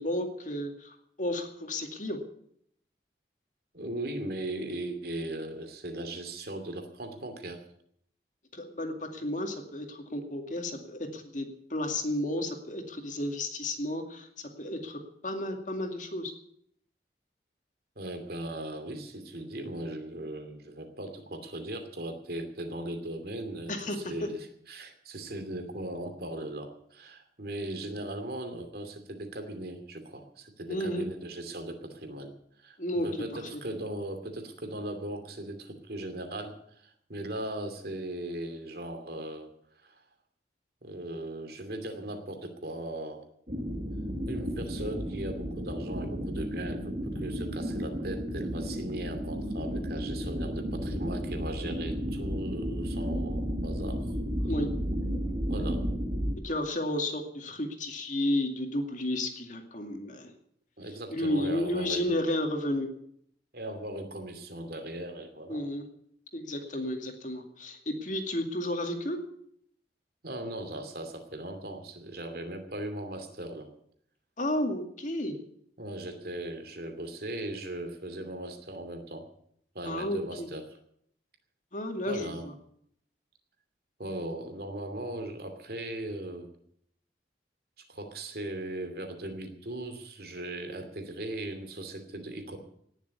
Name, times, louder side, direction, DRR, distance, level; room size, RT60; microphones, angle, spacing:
voice 1, 0.0-2.2 8.5-14.3 14.6-16.3 23.7-24.3 30.7-31.1 32.8-33.1 33.5-33.6 54.5-54.7 56.4-60.3 61.1-62.9 65.5-65.8 66.3-69.2 74.4-75.4 79.8-80.5 81.7-82.5, left 1 dB, 45° left, 5 dB, 2.3 m, -32 dB
voice 2, 3.7-7.6 18.0-32.3 32.6-39.5 39.8-40.0 40.8-43.2 44.3-54.1 54.4-54.5 55.5-55.8 60.8-62.2 63.5-65.7 66.7-66.8 70.2-73.7 75.8-79.3 79.7-80.7 82.1-82.5 84.0-86.5 87.9-92.6, right 1 dB, 60° right, 6 dB, 2.7 m, -38 dB
sound 1, 43.5-56.4, equal, 40° right, 2.1 m, -33 dB
18.5 x 7.2 x 9.5 m, 0.68 s
head